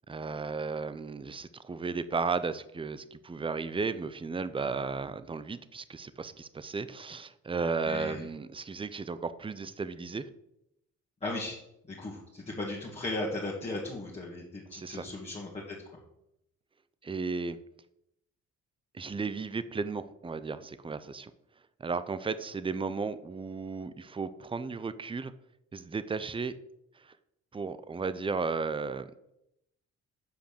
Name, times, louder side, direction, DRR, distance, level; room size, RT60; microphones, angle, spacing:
voice 1, 0.1-10.3 14.7-15.1 17.0-17.6 18.9-21.3 21.8-25.3 25.7-26.5 27.0-27.1 27.5-29.3, right 4 dB, 15° right, 14 dB, 0.6 m, -34 dB
voice 2, 7.9-8.2 11.2-11.6 11.9-15.8, left 2 dB, 20° left, -4 dB, 2.3 m, -36 dB
7.9 x 5.1 x 6.8 m, 0.81 s
cardioid pair, 90°, 30 cm